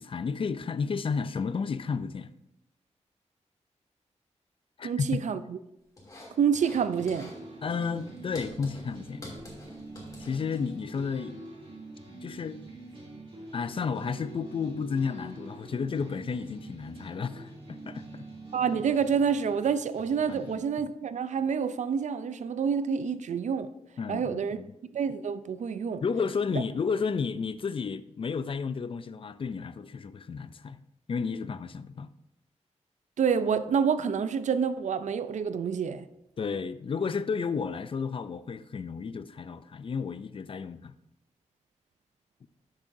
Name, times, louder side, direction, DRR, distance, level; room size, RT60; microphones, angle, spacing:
voice 1, 0.0-2.3 4.8-5.2 7.6-9.3 10.2-11.4 12.2-12.6 13.5-17.5 17.9-18.3 20.3-20.5 24.0-24.7 26.0-30.8 31.1-32.1 36.4-40.9, left 5 dB, 50° left, 0.4 m, -32 dB
voice 2, 4.8-5.6 6.4-7.3 18.5-23.7 24.1-24.6 24.9-26.0 26.5-26.6 33.2-36.1, right 6 dB, 90° right, 0.5 m, -28 dB
sound 1, 6.0-6.8 7.1-7.4 7.7-11.0, left 1 dB, 30° left, 2.8 m, -47 dB
sound 2, 6.7-20.5, right 2 dB, 50° right, 2.6 m, -46 dB
12.0 x 7.3 x 2.6 m
wide cardioid pair, 140°, 12 cm